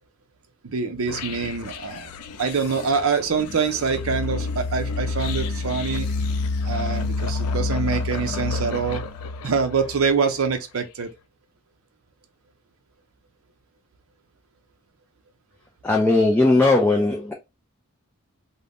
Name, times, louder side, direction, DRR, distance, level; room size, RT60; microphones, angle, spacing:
voice 1, 0.6-2.1 2.4-6.1 6.6-9.0 9.4-11.1, right 5 dB, 65° right, 0.5 m, -25 dB
sound 1, 1.1-10.3, left 3 dB, 90° left, 0.4 m, -29 dB
voice 2, 15.8-17.3, left 2 dB, 10° left, 0.3 m, -18 dB
2.5 x 2.1 x 3.4 m
head